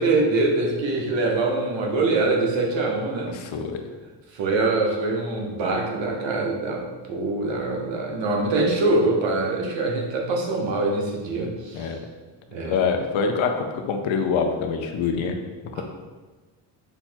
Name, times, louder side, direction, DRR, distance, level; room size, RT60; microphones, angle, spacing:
voice 1, 0.0-3.3 4.3-12.0 12.5-12.8 15.7-15.8, right 2 dB, 70° right, 1 dB, 1.0 m, -24 dB
voice 2, 3.3-3.8 11.7-12.0 12.6-15.4 15.7-15.8, left 5 dB, 85° left, 5 dB, 0.7 m, -25 dB
5.6 x 2.2 x 4.4 m, 1.3 s
cardioid pair, 105°, 46 cm